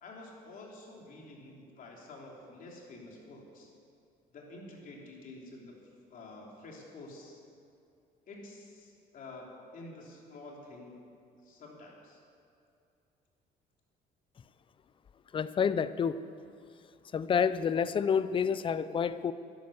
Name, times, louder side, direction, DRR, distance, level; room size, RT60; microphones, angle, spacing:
voice 1, 0.0-3.7 4.3-5.7 6.1-7.4 8.3-10.9 11.4-12.2, left 2 dB, 55° left, -1 dB, 3.2 m, -49 dB
voice 2, 15.3-16.2 17.1-19.3, left 7 dB, 30° left, 15 dB, 0.5 m, -28 dB
11.5 x 11.5 x 7.1 m, 2.5 s
cardioid pair, 110°, 17 cm